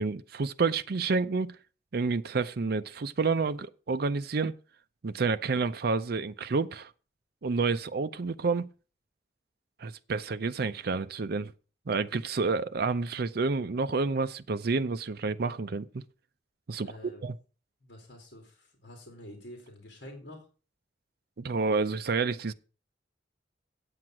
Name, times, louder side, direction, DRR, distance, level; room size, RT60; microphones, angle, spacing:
voice 1, 0.0-1.6 1.9-4.5 5.0-6.9 7.4-8.7 9.8-11.5 11.9-16.0 16.7-17.3 21.4-22.5, right 4 dB, 55° right, 0.5 m, -29 dB
voice 2, 16.8-17.3 17.8-20.5, left 1 dB, 60° left, 2.7 m, -48 dB
8.7 x 7.8 x 5.9 m
head